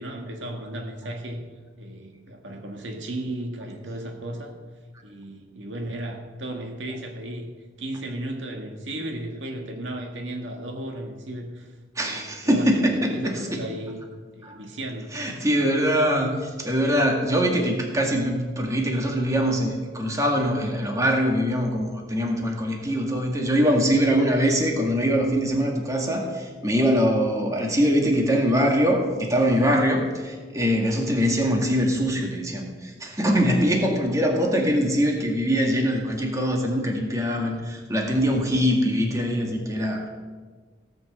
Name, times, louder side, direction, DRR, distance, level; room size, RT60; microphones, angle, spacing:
voice 1, 0.0-1.4 1.8-4.6 5.0-7.5 7.8-11.7 12.0-14.0 14.3-15.2, right 1 dB, 80° right, 2 dB, 1.8 m, -35 dB
voice 2, 12.0-13.6 14.4-14.6 15.1-40.1, equal, 15° right, 1 dB, 1.8 m, -23 dB
16.5 x 6.1 x 7.8 m, 1.4 s
head